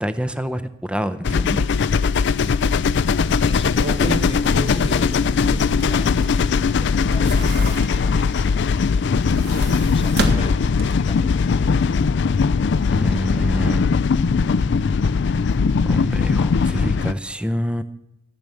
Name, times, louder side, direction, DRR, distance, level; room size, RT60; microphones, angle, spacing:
voice 1, 0.0-1.7 12.9-13.9 15.8-17.8, equal, 5° right, 12 dB, 0.6 m, -26 dB
sound 1, 1.2-17.1, left 5 dB, 60° left, 0.4 m, -19 dB
sound 2, 1.9-2.0 2.4-2.5 3.5-6.5 6.9-8.2 9.1-11.2 11.6-11.7, right 1 dB, 60° right, 1.5 m, -30 dB
voice 2, 3.4-8.4 9.9-11.7 13.2-13.3, left 3 dB, 30° left, 11 dB, 0.7 m, -39 dB
14.0 x 6.8 x 9.0 m, 0.87 s
head